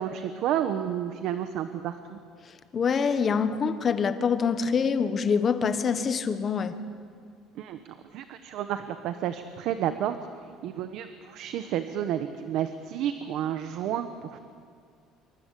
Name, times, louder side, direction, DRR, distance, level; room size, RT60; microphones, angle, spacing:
voice 1, 0.0-2.2 7.5-10.2 10.6-14.4, right 10 dB, 55° right, 9 dB, 1.2 m, -31 dB
voice 2, 2.7-6.7, left 6 dB, 25° left, 10 dB, 1.3 m, -25 dB
27.0 x 23.5 x 8.4 m, 2.2 s
cardioid pair, 170°, 0 cm